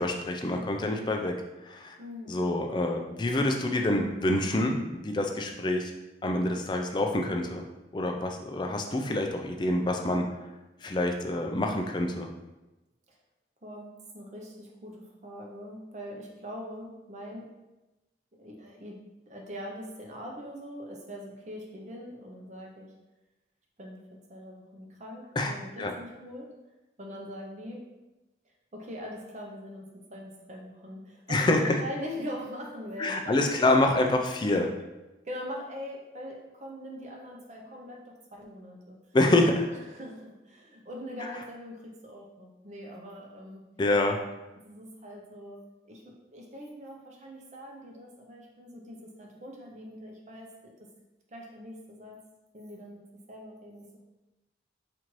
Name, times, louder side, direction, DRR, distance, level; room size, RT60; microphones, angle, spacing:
voice 1, 0.0-1.3 1.6-2.0 2.3-5.9 6.2-7.6 7.9-10.2 10.8-12.3 25.4-25.5 25.8-25.9 31.3-31.8 33.0-34.7 39.1-39.7 41.2-41.3 43.8-44.2, left 1 dB, 25° left, 3 dB, 0.3 m, -26 dB
voice 2, 2.0-2.4 13.6-17.5 18.4-19.0 19.3-22.9 23.8-24.0 24.3-26.5 27.0-27.9 28.7-34.1 35.2-39.2 39.7-43.6 44.6-45.6 45.8-50.7 51.3-52.2 52.5-53.0 53.3-53.8, equal, 40° right, 0 dB, 0.6 m, -42 dB
4.3 x 2.5 x 3.0 m, 1.0 s
head